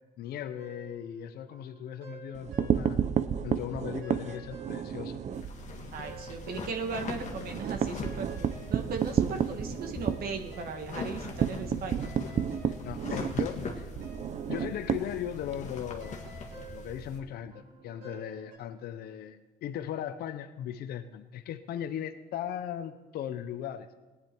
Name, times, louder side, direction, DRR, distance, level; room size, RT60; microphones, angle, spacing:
voice 1, 0.2-3.0 3.4-5.2 12.6-13.9 14.5-16.2 16.5-23.9, left 10 dB, 65° left, 10 dB, 0.7 m, -38 dB
sound 1, 0.6-3.2 3.5-7.2 7.5-18.6, right 3 dB, 85° right, 4.9 m, -52 dB
sound 2, 2.3-5.6 5.9-6.1 6.4-6.5 6.8-15.7, right 8 dB, 45° right, 0.6 m, -31 dB
sound 3, 5.3-17.2, left 3 dB, 45° left, 1.7 m, -41 dB
voice 2, 5.9-12.1, right 5 dB, 65° right, 5 dB, 1.5 m, -37 dB
17.5 x 9.7 x 4.5 m, 1.2 s
cardioid pair, 110°, 17 cm